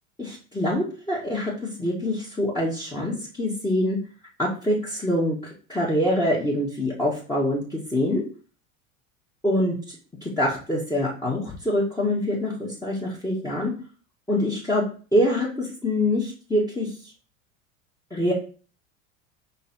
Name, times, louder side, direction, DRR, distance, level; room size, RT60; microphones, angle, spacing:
voice 1, 0.2-1.5 1.8-4.0 4.4-5.4 5.7-8.2 9.4-9.7 10.2-13.7 14.3-14.8 15.1-16.9 18.1-18.3, left 1 dB, 10° left, -7 dB, 2.0 m, -25 dB
5.4 x 4.1 x 4.5 m, 0.38 s
hypercardioid pair, 80°, 41 cm